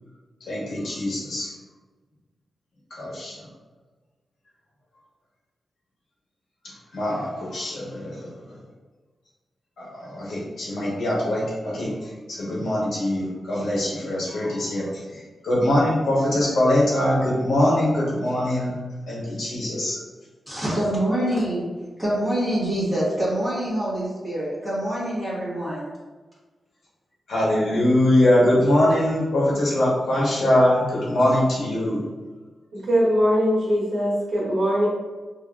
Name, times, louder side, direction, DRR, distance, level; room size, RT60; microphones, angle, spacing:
voice 1, 0.5-1.5 2.9-3.3 6.9-8.3 9.8-18.8 19.1-20.0 27.3-32.0, left 1 dB, 70° left, -6 dB, 1.1 m, -22 dB
voice 2, 20.5-21.7 22.0-25.9, right 1 dB, 5° left, -9 dB, 1.3 m, -25 dB
voice 3, 32.7-34.9, equal, 70° right, -5 dB, 0.9 m, -21 dB
3.1 x 2.6 x 2.4 m, 1.3 s
wide cardioid pair, 165°, 0 cm